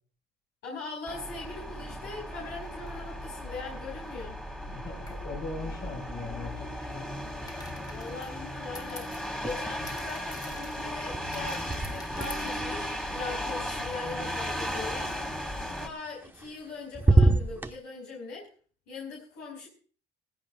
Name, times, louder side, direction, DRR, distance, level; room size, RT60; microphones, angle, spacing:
voice 1, 0.6-4.3 7.9-9.1 9.4-15.1 15.8-18.5 18.9-19.7, left 3 dB, 85° left, -2 dB, 5.3 m, -40 dB
sound 1, 1.1-15.9, equal, 5° left, 2.5 m, -36 dB
sound 2, 2.6-3.0 5.1-5.2 7.5-12.5, left 3 dB, 25° left, 2.1 m, -49 dB
voice 2, 4.7-7.1, left 3 dB, 60° left, 0 dB, 6.7 m, -40 dB
sound 3, 9.3-10.1 10.3-14.4 16.1-16.7 16.9-17.7, right 2 dB, 10° right, 0.9 m, -28 dB
18.5 x 16.0 x 2.5 m, 0.41 s
cardioid pair, 110°, 17 cm